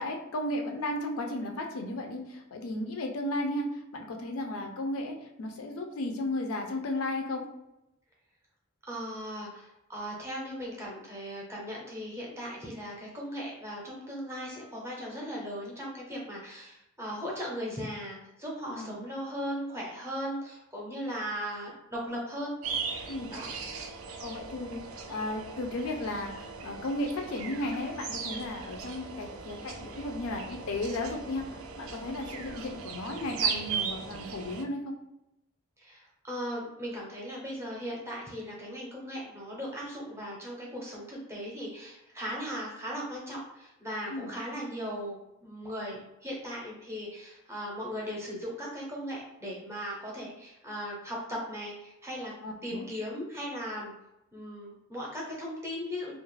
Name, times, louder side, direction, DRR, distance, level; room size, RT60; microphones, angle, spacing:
voice 1, 0.0-3.7 3.9-7.5 18.7-19.0 23.1-23.4 24.2-24.8 25.1-31.5 31.8-35.0 44.1-44.3 52.4-52.8, left 1 dB, 70° left, 3 dB, 0.4 m, -34 dB
voice 2, 8.9-22.6 23.3-23.5 35.8-45.2 45.4-52.3 52.6-53.9 54.3-56.1, equal, 10° right, -4 dB, 0.6 m, -38 dB
sound 1, 22.6-34.6, right 5 dB, 70° right, 0.4 m, -38 dB
2.3 x 2.0 x 3.1 m, 0.87 s
head